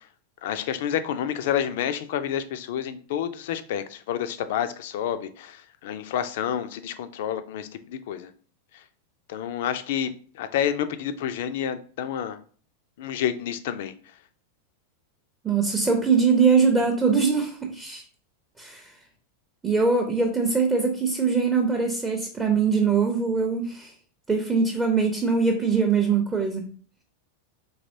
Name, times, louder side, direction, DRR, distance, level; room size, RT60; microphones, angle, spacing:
voice 1, 0.4-8.3 9.3-12.4 13.0-13.9, left 9 dB, 55° left, 0.3 m, -29 dB
voice 2, 15.4-18.0 18.6-18.9 19.6-23.9 24.3-26.7, right 5 dB, 15° right, 0.5 m, -22 dB
4.0 x 2.9 x 2.6 m
figure-of-eight pair, 90°, 0 cm